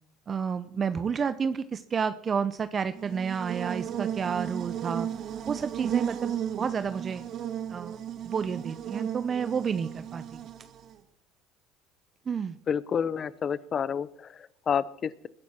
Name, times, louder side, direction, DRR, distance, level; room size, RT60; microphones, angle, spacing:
voice 1, 0.3-5.1 5.5-6.3 6.6-7.2 7.7-8.0 8.2-10.4 12.3-12.6, right 6 dB, 35° right, 11 dB, 0.7 m, -30 dB
Buzz, 2.9-11.0, right 9 dB, 55° right, 1.6 m, -35 dB
voice 2, 12.7-15.3, left 7 dB, 40° left, 17 dB, 0.8 m, -29 dB
21.0 x 10.5 x 4.4 m, 0.70 s
supercardioid pair, 85°, 0 cm